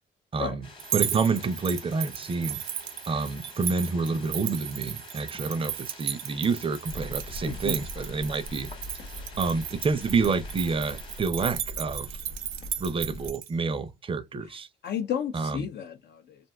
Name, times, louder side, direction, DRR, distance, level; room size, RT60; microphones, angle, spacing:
voice 1, 0.3-2.6 3.1-8.7 9.4-12.1 12.8-14.7 15.3-15.7, right 4 dB, 25° right, 0.5 m, -28 dB
sound 1, 0.6-11.2, left 3 dB, 25° left, 1.0 m, -48 dB
sound 2, 0.8-13.5, right 11 dB, 80° right, 0.5 m, -35 dB
sound 3, 6.9-13.3, left 1 dB, 85° left, 0.8 m, -41 dB
voice 2, 14.8-16.4, left 9 dB, 55° left, 0.4 m, -32 dB
2.6 x 2.3 x 3.3 m
cardioid pair, 90°, 20 cm